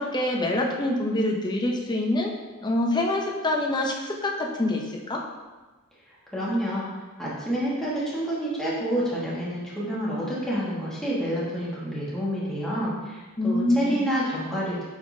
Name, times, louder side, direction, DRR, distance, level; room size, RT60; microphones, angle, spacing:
voice 1, 0.0-2.3 2.6-5.2 13.4-14.0, left 1 dB, 20° left, 0 dB, 0.6 m, -25 dB
voice 2, 6.3-6.9 7.2-14.8, equal, ahead, -8 dB, 1.3 m, -28 dB
9.7 x 3.6 x 2.7 m, 1.2 s
head